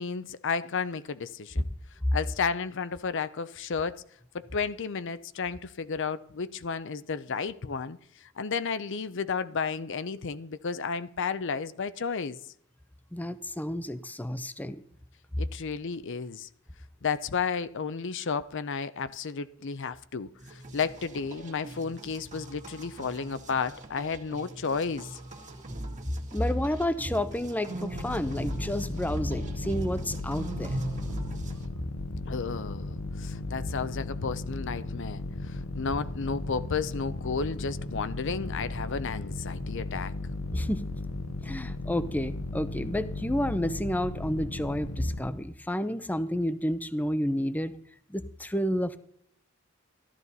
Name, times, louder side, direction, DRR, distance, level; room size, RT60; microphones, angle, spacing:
voice 1, 0.0-1.7 2.1-4.0 4.3-8.0 8.4-12.4 15.4-16.5 17.0-25.2 32.3-40.1, left 5 dB, 60° left, 0.6 m, -32 dB
voice 2, 13.1-14.8 15.3-15.4 26.3-30.8 40.5-40.8 41.4-47.7 48.1-49.0, left 1 dB, 10° left, 0.6 m, -30 dB
sound 1, 20.4-31.7, right 1 dB, 35° right, 1.8 m, -39 dB
sound 2, 27.9-45.2, left 2 dB, 90° left, 1.4 m, -36 dB
14.5 x 12.5 x 4.1 m
head